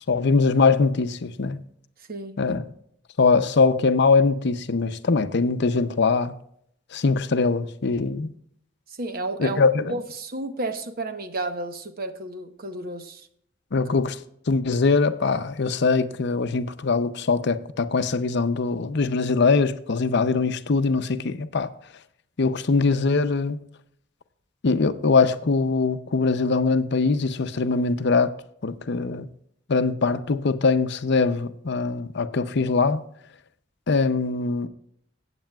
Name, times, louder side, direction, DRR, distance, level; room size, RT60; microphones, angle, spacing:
voice 1, 0.1-1.6 2.4-2.6 3.2-6.3 6.9-8.3 9.4-9.9 13.7-14.2 14.5-21.7 22.4-23.6 24.6-28.3 28.6-29.3 29.7-33.0 33.9-34.7, left 4 dB, 60° left, 0.6 m, -22 dB
voice 2, 8.9-9.6 9.9-13.3, right 2 dB, 50° right, 0.9 m, -32 dB
16.5 x 8.2 x 2.3 m
head